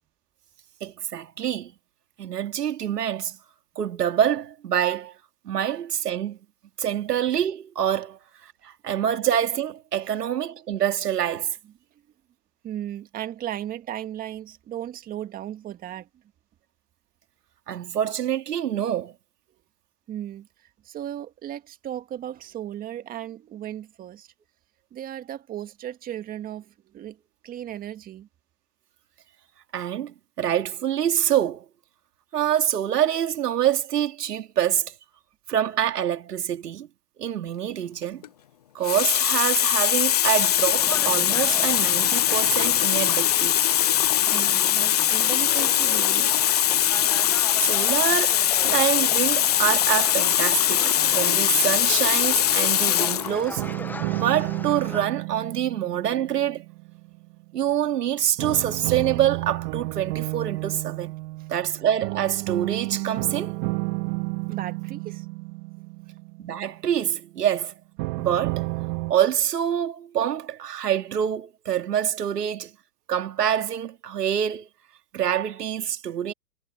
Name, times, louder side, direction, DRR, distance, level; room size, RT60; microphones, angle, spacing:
voice 1, 0.8-1.7 2.2-3.4 3.8-5.1 5.4-6.4 6.8-11.6 17.7-19.1 29.7-31.6 32.3-34.9 35.5-36.9 37.2-38.2 38.7-43.6 47.6-53.6 54.1-56.6 57.5-61.1 61.5-63.5 66.4-67.7 68.2-68.6 69.1-72.7 73.1-74.7 75.1-76.3, right 10 dB, 75° right, 2.9 m, -26 dB
voice 2, 12.6-16.1 20.1-24.3 24.9-27.2 27.4-28.3 43.9-46.5 61.4-61.5 64.5-65.3, right 11 dB, 20° right, 1.8 m, -36 dB
Water tap faucet, 38.0-38.3 38.8-53.3 54.2-54.4, left 11 dB, 30° left, 0.4 m, -21 dB
sound 1, 40.8-55.1, left 3 dB, 5° left, 1.0 m, -40 dB
sound 2, 51.0-52.2 53.6-57.6 58.4-67.2 68.0-69.1, right 24 dB, 35° right, 2.6 m, -32 dB
hypercardioid pair, 135°, 48 cm